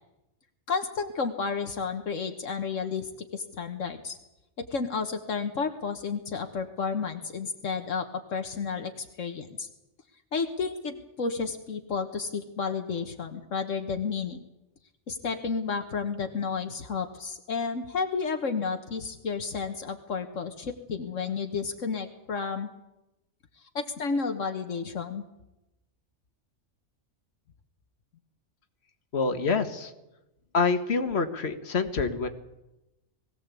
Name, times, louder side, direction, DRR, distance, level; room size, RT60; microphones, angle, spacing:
voice 1, 0.7-4.2 4.6-9.7 10.3-14.4 15.1-22.7 23.7-25.2, left 5 dB, 75° left, 6 dB, 1.7 m, -31 dB
voice 2, 29.1-29.9 30.5-32.3, left 4 dB, 55° left, 7 dB, 1.8 m, -26 dB
21.0 x 16.5 x 8.3 m, 0.94 s
omnidirectional pair, 1.3 m